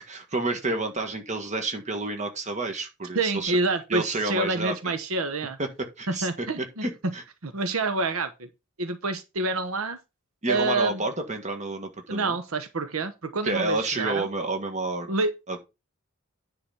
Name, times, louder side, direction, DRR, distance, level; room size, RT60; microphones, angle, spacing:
voice 1, 0.0-3.5 3.9-4.8 5.6-7.2 10.4-12.4 13.4-15.1 15.5-15.6, right 2 dB, 35° right, 1.7 m, -30 dB
voice 2, 3.1-5.6 6.1-6.8 7.4-8.5 8.8-10.0 10.5-11.0 12.1-14.3 15.1-15.3, right 3 dB, 80° right, 1.0 m, -27 dB
9.9 x 4.0 x 5.7 m
head